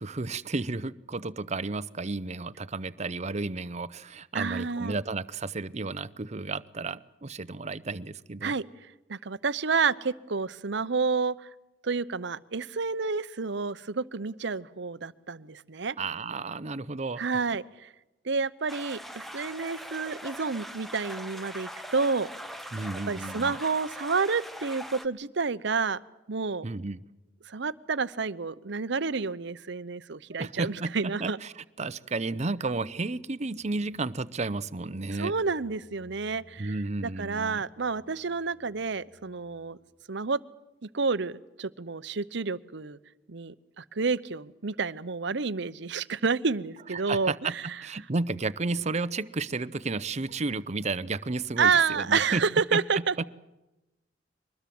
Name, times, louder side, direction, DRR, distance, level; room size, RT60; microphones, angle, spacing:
voice 1, 0.0-8.5 16.0-17.2 22.7-23.6 26.6-27.0 30.3-35.3 36.6-37.6 46.9-52.4 52.7-53.2, right 3 dB, 35° right, 16 dB, 0.7 m, -32 dB
voice 2, 4.3-5.0 8.4-8.7 9.1-11.5 11.8-16.0 17.2-17.9 18.2-22.3 23.1-26.0 26.3-26.6 27.5-31.4 35.2-36.7 37.2-39.8 40.1-40.4 40.9-43.0 43.3-47.6 51.6-53.2, right 4 dB, 65° right, 17 dB, 0.8 m, -29 dB
sound 1, 18.7-25.1, equal, ahead, 1.1 m, -41 dB
sound 2, 33.5-40.0, left 1 dB, 45° left, 5.5 m, -59 dB
23.5 x 20.5 x 7.7 m, 0.97 s
head